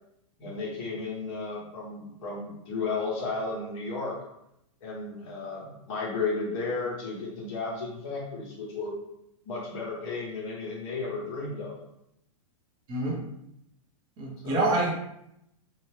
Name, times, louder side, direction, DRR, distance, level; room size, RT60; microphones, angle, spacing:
voice 1, 0.4-4.2 4.8-8.9 9.4-11.8 14.4-14.8, left 3 dB, 45° left, -4 dB, 1.1 m, -33 dB
voice 2, 14.2-14.9, right 2 dB, 25° right, -3 dB, 0.7 m, -26 dB
2.7 x 2.0 x 3.2 m, 0.80 s
hypercardioid pair, 150°, 19 cm